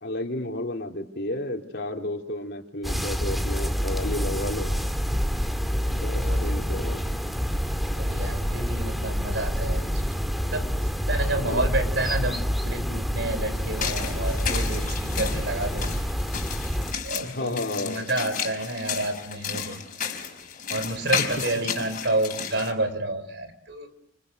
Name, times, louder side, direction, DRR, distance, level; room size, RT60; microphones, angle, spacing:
voice 1, 0.0-4.7 5.9-7.0 11.4-11.7 17.2-18.1, left 1 dB, 60° left, 2 dB, 3.7 m, -32 dB
sound 1, 2.8-16.9, equal, ahead, 2.2 m, -27 dB
voice 2, 6.1-6.5 8.0-9.9 10.4-16.0 17.0-19.8 20.7-23.9, right 2 dB, 65° right, 10 dB, 5.0 m, -30 dB
sound 2, 13.6-22.7, left 7 dB, 45° left, 5.2 m, -33 dB
30.0 x 28.5 x 6.4 m, 0.72 s
head